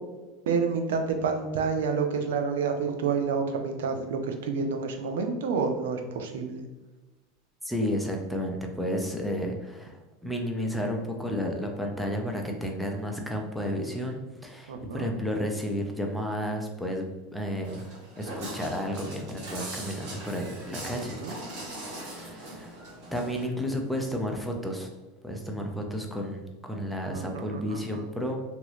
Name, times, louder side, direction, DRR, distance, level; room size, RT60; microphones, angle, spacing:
voice 1, 0.5-6.6 14.7-15.1 20.9-21.3 27.1-28.0, right 5 dB, 80° right, 5 dB, 0.5 m, -29 dB
voice 2, 7.6-17.9 18.2-21.1 22.0-22.8 23.1-24.9 25.2-28.4, equal, ahead, 1 dB, 0.6 m, -32 dB
Walk footsteps, 17.6-23.4, right 1 dB, 65° right, 1.2 m, -40 dB
2.9 x 2.6 x 3.0 m, 1.2 s
supercardioid pair, 105°, 0 cm